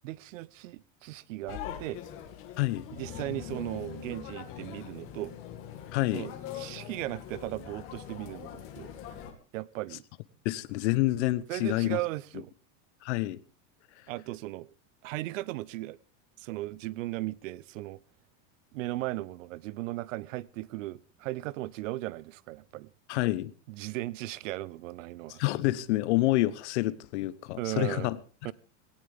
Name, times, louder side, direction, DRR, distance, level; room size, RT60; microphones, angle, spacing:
voice 1, 0.0-2.0 2.9-5.4 6.1-8.9 9.5-10.0 11.5-12.5 14.1-14.7 15.0-16.0 16.4-18.0 18.7-22.9 23.7-25.4 27.6-28.1 28.4-28.5, right 18 dB, 75° right, 0.8 m, -37 dB
sound 1, 1.5-9.3, left 9 dB, 35° left, 2.3 m, -42 dB
voice 2, 5.9-6.3 10.4-12.0 13.0-13.4 23.1-23.5 25.4-28.2, left 18 dB, 60° left, 1.0 m, -28 dB
18.5 x 17.5 x 3.5 m
supercardioid pair, 180°, 38 cm